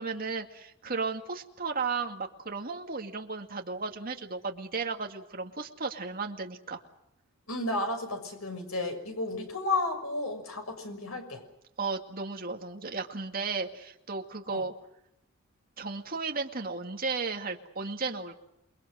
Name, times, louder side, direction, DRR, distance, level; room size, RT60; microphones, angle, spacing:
voice 1, 0.0-6.8 11.8-14.7 15.8-18.4, right 4 dB, 45° right, 3 dB, 2.2 m, -34 dB
voice 2, 7.5-11.4 14.5-14.6, left 2 dB, 90° left, 6 dB, 6.3 m, -32 dB
28.5 x 22.5 x 6.5 m, 0.82 s
head